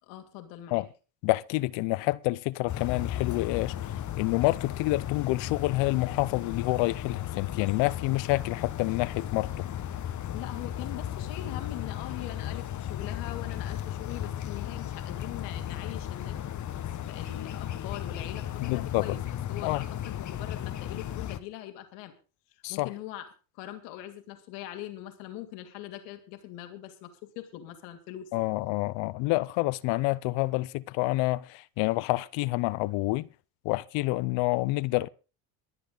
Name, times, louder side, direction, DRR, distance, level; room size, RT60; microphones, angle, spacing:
voice 1, 0.0-0.8 10.3-16.4 17.1-19.2 19.5-22.1 22.5-23.3 23.5-28.3, left 13 dB, 90° left, 2.7 m, -42 dB
voice 2, 1.2-3.7 4.1-9.7 18.6-19.1 19.6-19.8 22.6-22.9 28.3-33.3 33.6-35.1, left 20 dB, 70° left, 0.8 m, -28 dB
sound 1, 2.7-21.4, left 11 dB, 40° left, 1.1 m, -35 dB
23.0 x 8.1 x 4.0 m
supercardioid pair, 105°, 46 cm